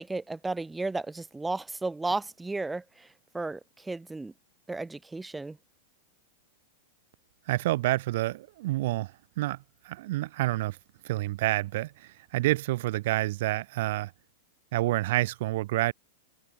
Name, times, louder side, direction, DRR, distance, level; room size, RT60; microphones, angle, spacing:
voice 1, 0.0-4.3 4.7-5.6, right 3 dB, 10° right, 3.1 m, -34 dB
voice 2, 7.5-10.8 11.0-14.1 14.7-15.9, right 17 dB, 60° right, 1.1 m, -28 dB
hypercardioid pair, 120°, 0 cm